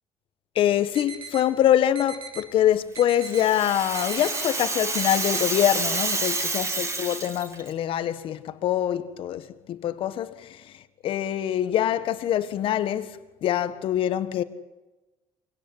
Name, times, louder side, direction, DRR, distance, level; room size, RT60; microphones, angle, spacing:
voice 1, 0.5-14.4, left 11 dB, 60° left, 1.6 m, -25 dB
sound 1, 0.9-1.4 1.9-2.4 2.9-3.4 3.9-4.4 4.9-5.4 5.9-6.4, right 6 dB, 55° right, 4.4 m, -39 dB
Rattle (instrument), 2.9-7.7, right 3 dB, 30° right, 5.9 m, -29 dB
24.5 x 17.5 x 9.9 m
cardioid pair, 100°, 10 cm